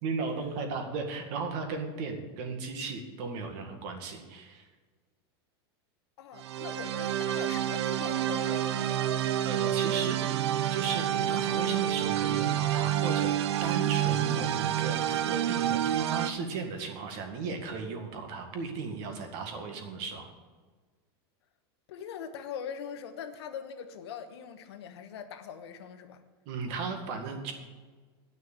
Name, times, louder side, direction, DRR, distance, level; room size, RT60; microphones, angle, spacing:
voice 1, 0.0-4.6 9.4-13.3 13.6-20.3 26.5-27.5, right 4 dB, 45° right, 5 dB, 1.9 m, -36 dB
voice 2, 6.2-9.1 21.9-26.2, left 8 dB, 80° left, 8 dB, 1.2 m, -42 dB
sound 1, 6.4-16.3, right 11 dB, 80° right, 0.6 m, -28 dB
9.7 x 6.3 x 8.7 m, 1.5 s
supercardioid pair, 155°, 14 cm